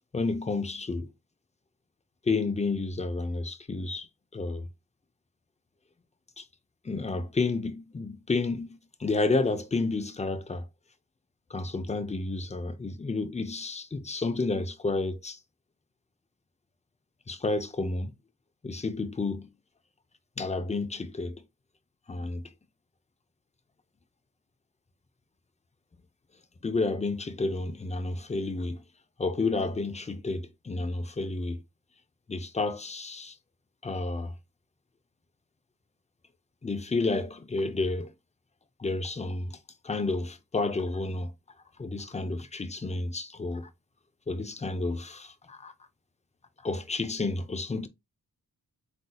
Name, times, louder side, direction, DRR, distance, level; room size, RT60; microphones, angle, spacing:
voice 1, 0.1-1.1 2.3-4.1 4.3-4.7 6.4-6.5 6.8-10.7 11.5-15.4 17.3-18.1 18.6-19.5 20.4-21.4 22.1-22.5 26.6-28.8 29.2-31.6 32.3-33.4 33.8-34.3 36.6-38.1 38.8-39.6 39.8-41.3 41.8-43.7 44.3-45.7 46.6-47.9, left 3 dB, 20° left, 0.4 m, -30 dB
7.8 x 2.7 x 2.2 m
wide cardioid pair, 145°, 37 cm